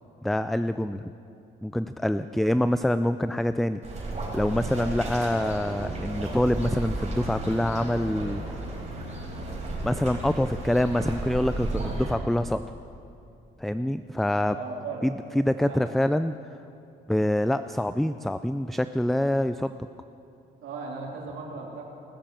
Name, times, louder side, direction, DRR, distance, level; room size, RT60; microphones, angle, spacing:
voice 1, 0.2-1.1 1.6-3.8 4.3-8.5 9.8-12.6 13.6-14.6 15.0-16.4 17.1-19.8, left 1 dB, ahead, 11 dB, 0.3 m, -26 dB
sound 1, 3.8-12.1, right 2 dB, 35° right, 4.2 m, -33 dB
voice 2, 14.5-15.8 20.6-21.8, right 4 dB, 85° right, -1 dB, 2.8 m, -37 dB
19.0 x 7.5 x 7.4 m, 2.7 s
cardioid pair, 90°, 20 cm